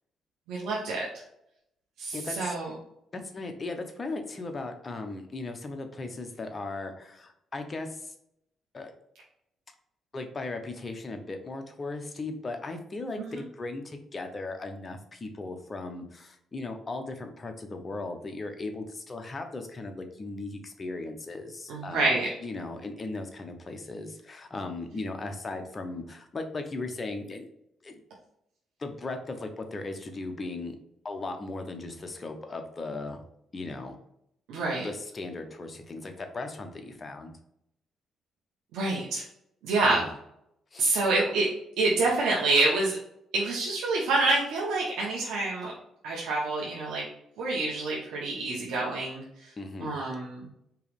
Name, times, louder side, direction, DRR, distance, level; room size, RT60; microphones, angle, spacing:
voice 1, 0.5-1.1 2.0-2.7 13.2-13.4 21.7-22.3 34.5-34.9 38.7-39.2 39.6-40.0 40.8-41.5 41.8-43.0 43.3-45.7 46.0-47.0 47.4-49.5 49.8-50.5, right 2 dB, 90° right, -4 dB, 1.0 m, -27 dB
voice 2, 2.1-2.6 3.1-8.1 8.7-8.9 10.1-27.5 27.8-28.0 28.8-30.8 31.0-33.2 33.5-34.0 34.8-37.3 39.8-40.1 40.7-41.0 49.6-50.0, left 2 dB, 30° left, 5 dB, 0.9 m, -37 dB
4.6 x 3.0 x 3.4 m, 0.77 s
cardioid pair, 90°, 0 cm